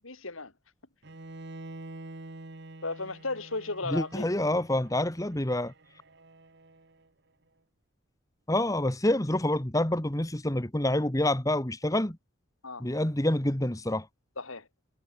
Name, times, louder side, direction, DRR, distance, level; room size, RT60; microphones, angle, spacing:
voice 1, 0.0-0.5 2.8-4.5 12.6-12.9 14.4-14.7, left 3 dB, 80° left, 3.4 m, -35 dB
Bowed string instrument, 1.0-7.1, right 2 dB, 55° right, 1.7 m, -47 dB
voice 2, 3.9-5.7 8.5-12.2 12.8-14.1, left 1 dB, 15° left, 1.4 m, -27 dB
head